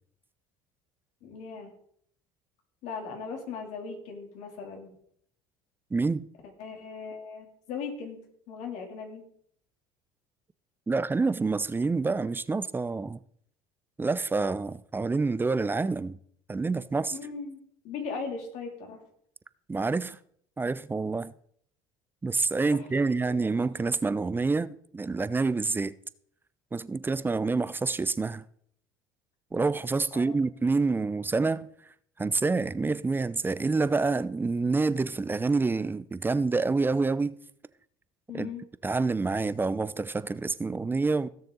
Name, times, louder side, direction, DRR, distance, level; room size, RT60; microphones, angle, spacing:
voice 1, 1.2-1.7 2.8-4.9 6.6-8.2 8.5-9.2 17.1-19.0 22.7-23.4 30.1-30.4 38.3-38.6, left 5 dB, 65° left, 3.2 m, -38 dB
voice 2, 5.9-6.3 10.9-13.2 14.0-16.2 16.5-17.2 19.7-20.2 20.6-21.3 22.2-25.9 26.7-28.4 29.5-31.7 32.2-37.4 38.3-38.5 38.8-41.3, right 3 dB, 15° right, 0.5 m, -27 dB
16.5 x 6.6 x 3.9 m
supercardioid pair, 80°, 13 cm